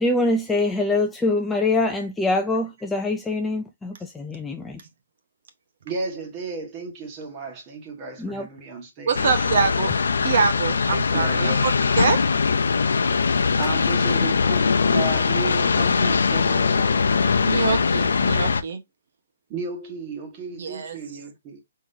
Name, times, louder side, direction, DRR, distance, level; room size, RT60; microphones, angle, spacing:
voice 1, 0.0-4.8 8.2-8.5, left 2 dB, 5° left, 0.4 m, -24 dB
voice 2, 5.8-9.5 10.9-11.7 13.6-17.7 19.5-21.6, right 4 dB, 20° right, 1.3 m, -34 dB
sound 1, 9.1-18.6, left 5 dB, 90° left, 0.6 m, -21 dB
voice 3, 9.1-9.9 10.2-11.7 12.0-12.3 17.4-18.8 20.6-21.0, right 6 dB, 50° right, 0.8 m, -24 dB
4.7 x 3.7 x 2.7 m
hypercardioid pair, 170°, 0 cm